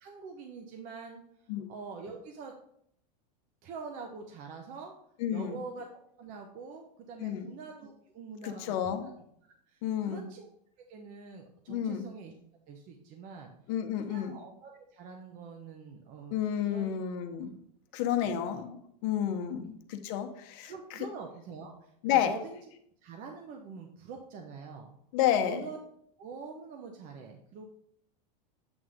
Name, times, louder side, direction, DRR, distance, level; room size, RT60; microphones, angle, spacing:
voice 1, 0.0-1.2 1.7-2.5 3.6-4.9 5.3-5.9 6.2-9.1 9.7-10.5 10.9-12.3 12.7-13.5 13.9-16.9 18.2-18.6 19.6-19.7 20.6-22.6 23.0-24.9 25.4-25.8 26.2-27.7, right 4 dB, 40° right, 2 dB, 0.9 m, -45 dB
voice 2, 5.2-5.6 7.2-7.5 8.4-9.1 9.8-10.3 11.7-12.1 13.7-14.3 16.3-17.5 17.9-21.0 22.0-22.4 25.1-25.6, left 10 dB, 55° left, 6 dB, 0.9 m, -31 dB
8.0 x 3.6 x 4.9 m, 0.69 s
supercardioid pair, 135°, 21 cm